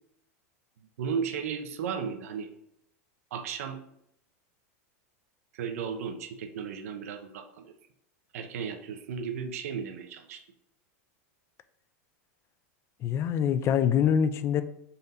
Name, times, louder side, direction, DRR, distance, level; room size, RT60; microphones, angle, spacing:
voice 1, 1.0-2.5 3.3-3.8 5.5-7.7 8.3-10.4, right 6 dB, 80° right, 6 dB, 0.5 m, -35 dB
voice 2, 13.0-14.6, left 8 dB, 35° left, 12 dB, 0.3 m, -24 dB
4.0 x 2.6 x 4.0 m, 0.74 s
hypercardioid pair, 115°, 8 cm